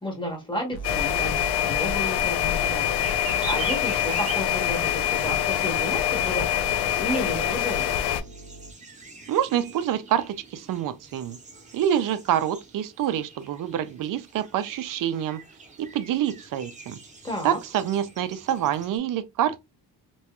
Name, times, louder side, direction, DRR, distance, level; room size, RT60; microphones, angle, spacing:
voice 1, 0.0-2.8 3.1-6.4 6.9-8.0 17.2-17.6, left 1 dB, 10° left, 1.1 m, -32 dB
sound 1, 0.7-8.7, right 4 dB, 55° left, 0.7 m, -42 dB
sound 2, 0.8-8.2, left 10 dB, 85° left, 0.5 m, -25 dB
sound 3, 2.9-19.0, right 4 dB, 20° right, 0.7 m, -43 dB
voice 2, 9.3-11.4 11.7-15.4 15.8-17.0 17.4-19.6, right 10 dB, 60° right, 0.5 m, -26 dB
3.0 x 2.9 x 2.3 m
cardioid pair, 140°, 38 cm